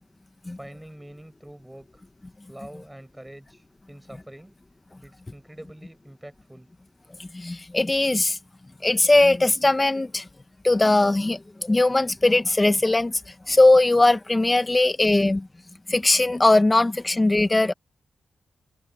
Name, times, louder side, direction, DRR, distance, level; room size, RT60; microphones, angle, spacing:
voice 1, 0.6-2.0 2.5-4.5 5.0-6.7, right 1 dB, 10° right, 6.6 m, -45 dB
voice 2, 7.2-8.4 8.8-10.3 10.6-13.2 13.5-15.5 15.9-17.7, left 2 dB, 25° left, 1.8 m, -20 dB
cardioid pair, 55°, 0 cm